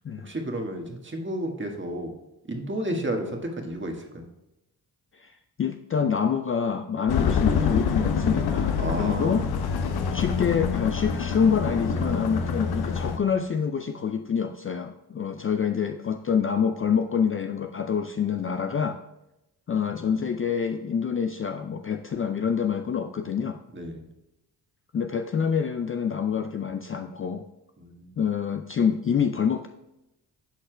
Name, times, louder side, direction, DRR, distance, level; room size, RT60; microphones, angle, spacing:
voice 1, 0.2-2.1 2.5-4.3 8.8-9.4 23.7-24.0 27.8-28.1, right 1 dB, 25° right, 2 dB, 1.5 m, -32 dB
voice 2, 5.1-9.4 10.1-19.0 19.7-23.6 24.9-27.4 28.2-29.7, left 7 dB, 30° left, 6 dB, 0.4 m, -26 dB
sound 1, 7.1-13.2, left 6 dB, 55° left, 0.8 m, -26 dB
12.5 x 4.2 x 2.2 m, 0.91 s
supercardioid pair, 45°, 44 cm